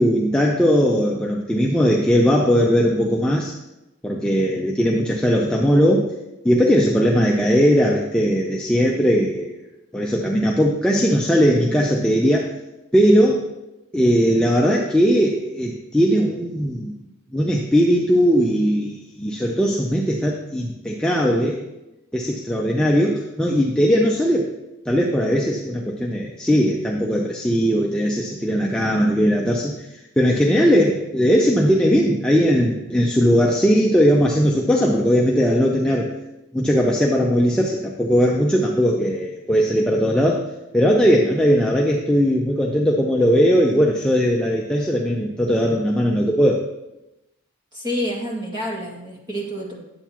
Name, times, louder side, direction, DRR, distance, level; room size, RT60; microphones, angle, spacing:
voice 1, 0.0-3.5 4.0-6.1 6.4-9.6 9.9-12.5 12.9-13.5 13.9-17.0 17.3-21.6 22.1-24.5 24.9-36.1 36.5-40.4 40.7-46.6, equal, 5° left, -2 dB, 0.5 m, -19 dB
voice 2, 47.7-49.8, equal, 20° right, -3 dB, 2.0 m, -28 dB
10.5 x 8.0 x 2.9 m, 0.94 s
head